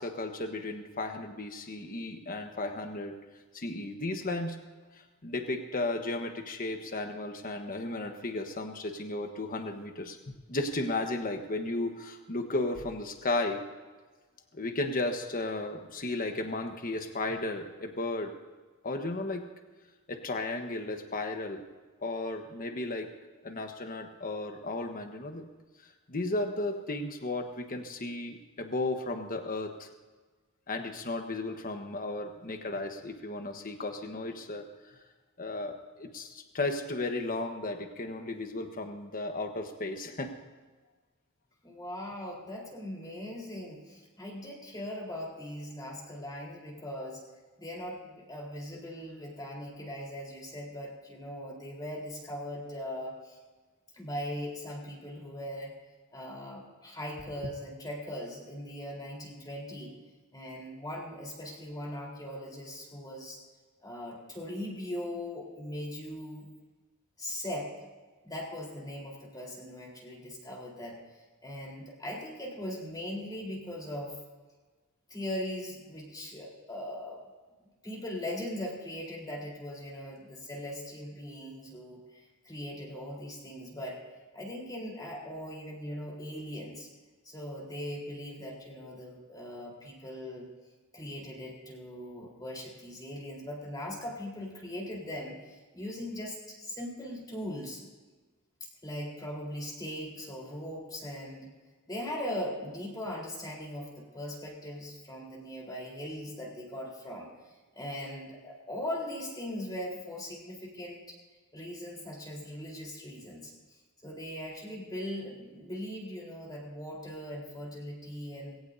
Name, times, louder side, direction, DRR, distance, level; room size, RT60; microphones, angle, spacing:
voice 1, 0.0-3.1 3.5-4.6 4.9-13.6 14.5-18.3 18.8-19.4 20.1-21.6 22.0-23.1 23.4-25.4 26.1-29.9 30.7-35.0 35.4-40.3, left 2 dB, 40° left, 5 dB, 1.2 m, -34 dB
voice 2, 41.6-47.2 47.6-53.4 53.9-55.7 56.1-60.0 60.3-63.4 63.8-66.5 67.2-67.7 68.2-74.2 75.1-77.2 77.8-84.0 84.3-86.9 87.2-90.5 90.9-97.8 98.8-101.5 101.9-107.3 107.7-111.2 111.5-113.5 114.0-118.6, left 1 dB, 20° left, -2 dB, 4.0 m, -40 dB
21.0 x 17.5 x 2.7 m, 1.3 s
head